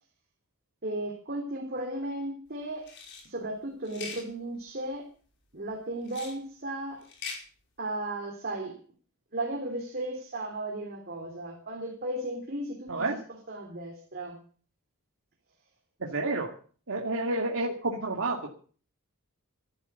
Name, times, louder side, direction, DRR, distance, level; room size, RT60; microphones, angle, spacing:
voice 1, 0.8-2.9 3.3-5.1 5.5-7.0 7.8-8.8 9.3-13.1 13.5-14.4, right 1 dB, 45° right, 0 dB, 3.3 m, -35 dB
sound 1, 2.8-3.3 3.8-4.2 6.0-6.4 7.0-7.4, left 5 dB, 55° left, 5.4 m, -41 dB
voice 2, 16.0-16.5 16.9-18.5, right 2 dB, 65° right, 0 dB, 2.4 m, -30 dB
14.5 x 12.5 x 6.9 m, 0.43 s
head